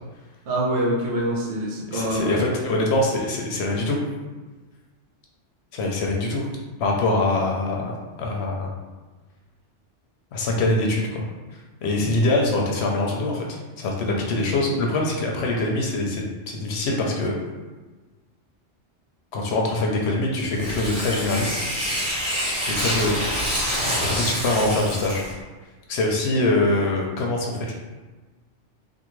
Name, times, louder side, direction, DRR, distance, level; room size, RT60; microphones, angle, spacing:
voice 1, 0.5-2.3 12.0-12.2 14.3-14.4, right 1 dB, 70° right, -3 dB, 0.9 m, -25 dB
voice 2, 1.9-4.0 5.7-6.5 6.8-8.7 10.3-11.3 11.8-17.4 19.3-21.6 22.1-22.2 22.7-23.3 24.0-25.2 25.9-27.7, left 2 dB, 70° left, 0 dB, 0.8 m, -24 dB
Tearing, 20.5-25.4, equal, 30° right, 1.2 m, -26 dB
3.5 x 2.1 x 3.0 m, 1.3 s
omnidirectional pair, 1.2 m